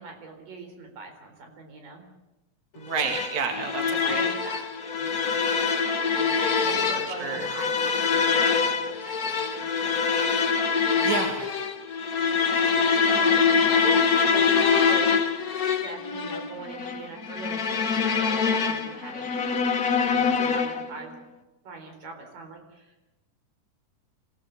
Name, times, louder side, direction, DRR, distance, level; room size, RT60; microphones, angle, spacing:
voice 1, 0.0-2.0 3.8-5.3 6.1-10.0 10.9-11.2 12.7-14.5 14.9-15.2 15.5-19.3 20.0-21.2 21.6-23.0, right 4 dB, 75° right, 3 dB, 5.8 m, -42 dB
voice 2, 2.8-4.2 6.3-7.5 11.0-11.5, right 5 dB, 55° right, 3 dB, 3.6 m, -31 dB
sound 1, 2.9-21.0, left 5 dB, 65° left, 0.8 m, -24 dB
26.0 x 17.5 x 8.3 m, 1.0 s
omnidirectional pair, 3.9 m